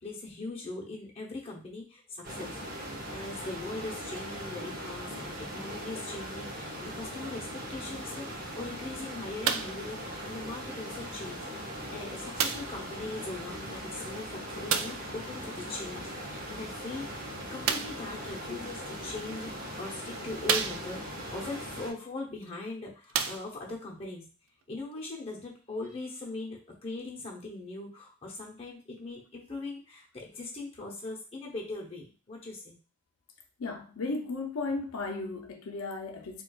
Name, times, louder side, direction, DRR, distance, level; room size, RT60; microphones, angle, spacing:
voice 1, 0.0-2.6 3.1-24.2 24.7-32.8, left 2 dB, 30° left, 0.8 m, -40 dB
sound 1, 2.2-21.9, equal, 40° right, 0.8 m, -40 dB
sound 2, 9.4-9.9 10.8-10.9 12.4-12.8 14.7-15.1 17.6-18.1 19.0-19.1 19.8-19.9 20.4-21.2 22.4-22.5 23.0-23.8 24.6-24.7, right 7 dB, 75° right, 0.3 m, -30 dB
voice 2, 33.6-36.4, left 3 dB, 90° left, 0.5 m, -35 dB
4.4 x 2.3 x 2.3 m
head